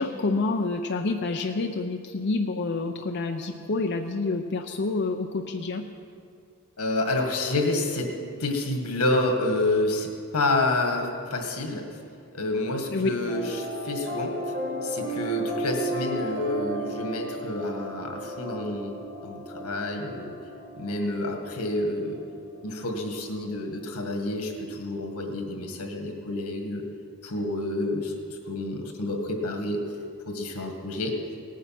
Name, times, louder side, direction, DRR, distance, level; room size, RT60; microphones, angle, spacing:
voice 1, 0.0-5.8 12.9-13.1, left 3 dB, 50° left, 4 dB, 0.6 m, -28 dB
voice 2, 6.8-8.1 8.4-10.1 10.3-11.8 12.3-14.3 14.8-19.0 19.2-20.3 20.8-22.2 22.6-26.8 27.2-28.1 28.5-29.8 30.3-31.2, left 2 dB, 90° left, 4 dB, 1.9 m, -28 dB
sound 1, 13.3-22.7, right 1 dB, 40° right, 3.3 m, -34 dB
18.0 x 9.6 x 5.9 m, 2.4 s
head